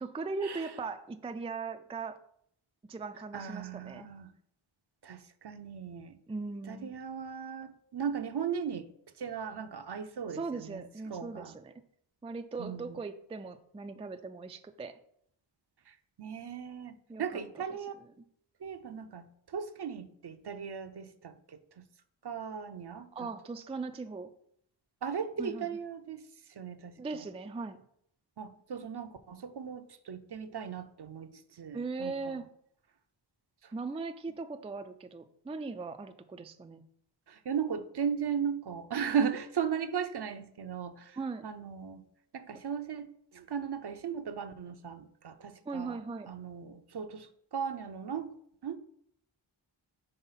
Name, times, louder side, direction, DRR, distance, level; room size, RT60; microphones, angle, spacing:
voice 1, 0.0-2.2 2.9-4.1 6.3-6.9 10.3-11.7 12.2-15.0 17.1-17.6 18.0-18.2 23.1-24.3 25.4-25.8 27.0-27.8 31.7-32.5 33.7-36.8 41.1-41.5 45.7-46.3, right 4 dB, 15° right, 8 dB, 0.3 m, -39 dB
voice 2, 3.3-4.3 5.0-6.2 6.7-8.9 9.2-11.6 12.6-13.0 15.9-17.9 18.6-21.6 22.2-23.3 25.0-26.2 26.5-26.9 28.4-32.4 33.6-33.7 37.3-41.2 41.4-42.0 42.3-46.0 46.3-48.3 48.6-48.8, right 7 dB, 55° right, 9 dB, 0.6 m, -37 dB
5.6 x 3.5 x 5.6 m, 0.69 s
wide cardioid pair, 55°, 47 cm